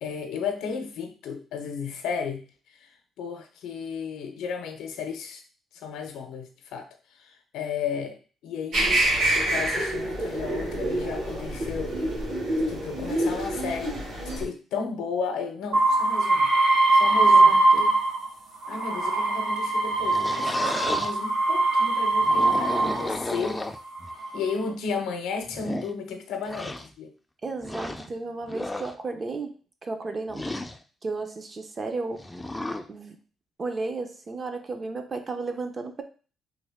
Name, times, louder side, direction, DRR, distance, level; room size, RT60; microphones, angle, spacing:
voice 1, 0.0-2.5 3.2-5.4 5.8-6.9 7.2-9.0 9.3-11.9 12.7-14.0 14.4-16.5 16.9-17.5 18.7-23.7 24.3-27.1, left 5 dB, 85° left, 5 dB, 0.6 m, -33 dB
Khatmandu Palace Pigeons, 8.7-14.5, right 1 dB, 65° right, 1.6 m, -27 dB
sound 1, 15.7-18.3 18.6-23.2 23.9-24.5, right 2 dB, 85° right, 1.0 m, -21 dB
voice 2, 17.2-17.9 27.4-29.5 29.8-30.5 31.0-32.2 32.9-33.2 33.6-36.0, right 3 dB, 35° right, 6 dB, 0.6 m, -33 dB
sound 2, 19.8-21.1 22.1-24.1 24.9-25.0 25.5-25.9 26.5-26.9 27.6-28.1 28.5-28.9 30.3-30.8 32.2-32.9, left 1 dB, 10° left, 0.3 m, -33 dB
3.4 x 2.2 x 3.4 m, 0.37 s
cardioid pair, 90°, 0 cm